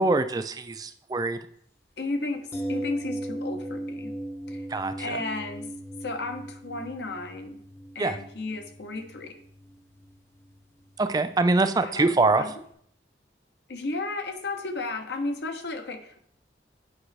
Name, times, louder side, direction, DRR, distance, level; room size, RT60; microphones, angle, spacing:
voice 1, 0.0-1.4 4.7-4.9 8.0-8.2 11.0-12.4, right 3 dB, 20° right, 10 dB, 0.3 m, -23 dB
voice 2, 2.0-4.1 4.5-4.7 5.0-5.7 6.0-7.6 7.9-9.3 11.8-12.1 12.4-12.5 13.7-16.2, left 2 dB, 70° left, 5 dB, 0.9 m, -33 dB
sound 1, 2.5-12.4 12.7-12.8, right 1 dB, 15° left, 0.7 m, -38 dB
8.4 x 4.8 x 3.3 m, 0.64 s
head